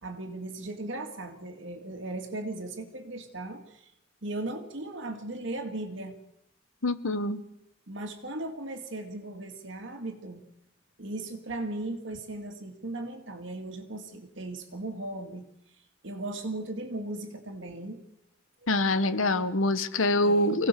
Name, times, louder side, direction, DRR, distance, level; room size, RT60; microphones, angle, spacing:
voice 1, 0.0-3.9 4.2-6.2 7.9-10.4 11.0-15.5 16.0-18.0 20.2-20.6, right 2 dB, 65° right, 3 dB, 2.2 m, -37 dB
voice 2, 6.8-7.4 18.7-20.7, left 1 dB, 80° left, 12 dB, 1.4 m, -25 dB
25.5 x 17.5 x 6.8 m, 0.79 s
head